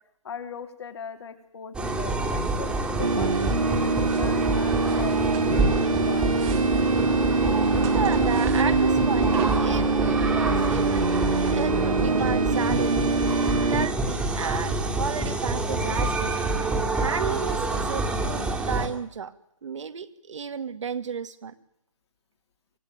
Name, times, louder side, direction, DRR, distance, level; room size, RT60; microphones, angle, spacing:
voice 1, 0.2-5.2 5.4-6.4, left 7 dB, 50° left, 6 dB, 3.8 m, -39 dB
sound 1, 1.7-18.9, right 2 dB, 5° right, 2.6 m, -27 dB
sound 2, 3.0-13.9, right 3 dB, 90° right, 1.6 m, -24 dB
sound 3, 4.0-4.4 4.8-5.9 6.1-13.1, right 10 dB, 20° right, 2.2 m, -43 dB
voice 2, 7.6-9.3 9.6-13.1 13.7-19.3 19.6-21.5, right 6 dB, 60° right, 10 dB, 2.2 m, -33 dB
25.0 x 18.5 x 9.5 m, 0.71 s
hypercardioid pair, 155°, 17 cm